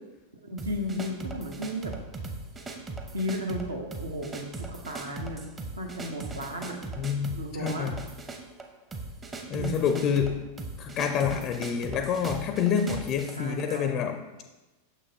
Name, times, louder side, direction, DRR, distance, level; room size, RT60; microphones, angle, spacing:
voice 1, 0.4-2.0 3.1-5.4 5.8-6.8 7.3-7.9 9.5-10.1 13.3-14.0, equal, 75° right, 2 dB, 0.8 m, -34 dB
sound 1, 0.6-13.9, right 3 dB, 20° right, 0.7 m, -39 dB
voice 2, 7.0-7.3 7.5-8.0 9.5-10.4 10.8-14.2, left 7 dB, 35° left, 7 dB, 0.4 m, -27 dB
6.3 x 5.7 x 2.7 m, 1.1 s
figure-of-eight pair, 90°, 0 cm